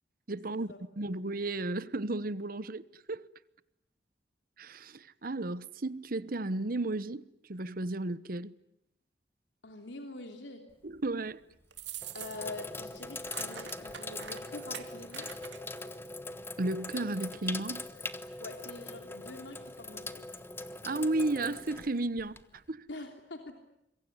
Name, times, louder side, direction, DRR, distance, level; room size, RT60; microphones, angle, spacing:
voice 1, 0.3-3.3 4.6-7.2 7.5-8.5 10.8-11.4 16.6-17.8 20.8-22.9, right 2 dB, 55° right, 1.0 m, -34 dB
voice 2, 9.6-10.6 12.1-15.3 18.4-20.3 22.9-23.6, left 2 dB, 85° left, 3.1 m, -45 dB
Sink (filling or washing), 10.7-11.1 11.8-22.7, left 2 dB, 15° left, 1.2 m, -42 dB
sound 1, 11.7-12.6 12.9-15.8, right 9 dB, 80° right, 2.6 m, -45 dB
26.5 x 23.0 x 9.7 m
head